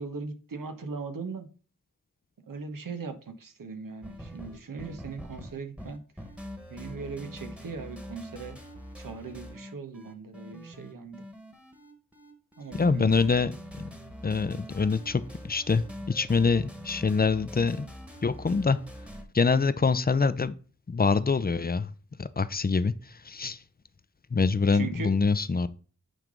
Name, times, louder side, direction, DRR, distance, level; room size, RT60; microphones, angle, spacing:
voice 1, 0.0-1.5 2.5-6.0 6.7-8.6 9.0-11.3 12.6-13.1 24.7-25.1, right 4 dB, 80° right, 1.1 m, -39 dB
sound 1, 4.0-19.2, equal, 5° right, 1.4 m, -44 dB
voice 2, 12.7-13.6 14.2-17.9 18.2-18.8 19.3-20.6 20.9-21.9 22.2-22.9 23.2-23.6 24.3-25.7, left 4 dB, 30° left, 0.5 m, -25 dB
9.1 x 3.4 x 3.8 m
cardioid pair, 50°, 33 cm